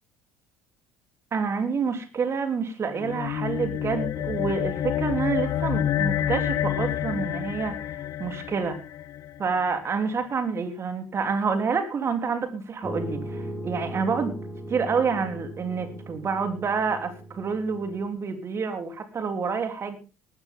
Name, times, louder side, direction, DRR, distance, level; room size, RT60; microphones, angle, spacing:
voice 1, 1.3-7.9 8.2-8.8 9.4-14.4 14.7-20.0, right 5 dB, 40° right, 7 dB, 3.3 m, -28 dB
sound 1, 2.9-9.6, left 11 dB, 55° left, 0.9 m, -28 dB
sound 2, 12.8-18.1, right 1 dB, ahead, 6.2 m, -38 dB
18.5 x 13.5 x 3.7 m, 0.33 s
hypercardioid pair, 60°, 7 cm